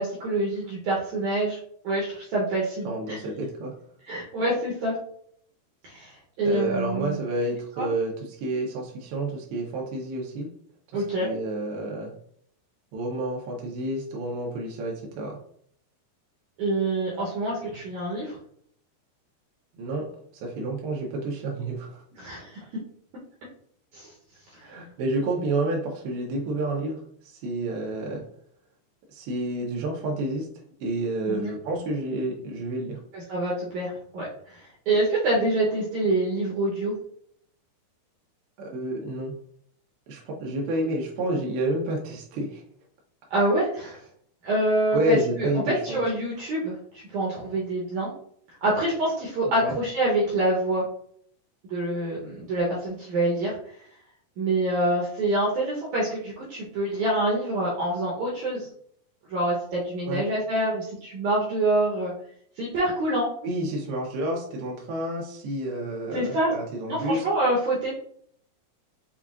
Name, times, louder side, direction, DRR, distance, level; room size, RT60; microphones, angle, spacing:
voice 1, 0.0-1.6 1.8-3.2 4.1-5.0 5.8-7.2 7.8-7.9 10.9-11.3 16.6-18.4 22.2-22.6 23.9-24.1 24.5-24.6 31.3-31.5 33.1-36.9 43.3-44.0 44.4-46.8 47.1-48.1 48.6-50.8 51.7-53.5 54.4-58.7 59.3-62.1 62.6-63.3 66.1-66.5 66.9-67.9, right 1 dB, 70° right, -5 dB, 1.8 m, -26 dB
voice 2, 2.8-3.7 6.4-10.5 10.9-12.1 12.9-15.4 19.8-20.1 20.4-22.0 24.6-28.2 29.1-30.5 30.8-33.0 38.6-39.3 40.1-42.6 44.9-46.0 49.5-49.8 60.1-60.3 63.4-67.2, right 1 dB, 90° right, -1 dB, 2.7 m, -29 dB
6.9 x 2.3 x 2.4 m, 0.63 s
omnidirectional pair, 4.5 m